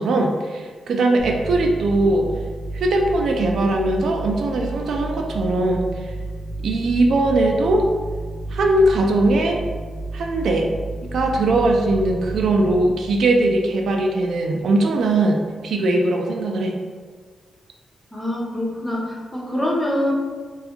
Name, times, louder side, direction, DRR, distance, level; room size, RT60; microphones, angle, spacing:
voice 1, 0.0-2.3 2.7-5.8 6.6-7.9 8.5-9.7 10.1-10.7 11.0-15.4 15.6-16.8, right 2 dB, 70° right, 2 dB, 0.3 m, -20 dB
sound 1, 1.2-14.4, right 2 dB, 70° left, 0.8 m, -32 dB
voice 2, 18.1-20.1, left 1 dB, 10° left, -2 dB, 0.4 m, -24 dB
2.4 x 2.3 x 2.7 m, 1.6 s
wide cardioid pair, 145°, 0 cm